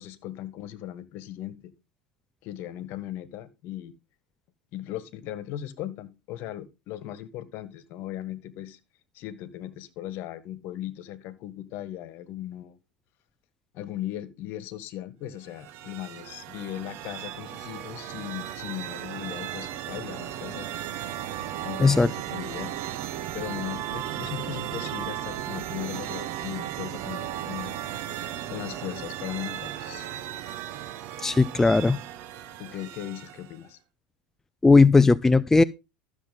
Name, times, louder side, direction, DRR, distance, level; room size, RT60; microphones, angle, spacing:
voice 1, 0.0-1.7 2.4-3.9 4.7-8.8 9.1-12.8 13.7-20.7 21.6-22.7 23.3-27.7 28.5-30.1 32.6-33.8, left 12 dB, 50° left, 1.5 m, -38 dB
sound 1, 15.4-33.6, right 11 dB, 55° right, 1.2 m, -36 dB
voice 2, 21.8-22.1 31.2-32.0 34.6-35.6, left 3 dB, 10° left, 0.4 m, -17 dB
13.0 x 7.2 x 3.7 m
hypercardioid pair, 90°, 5 cm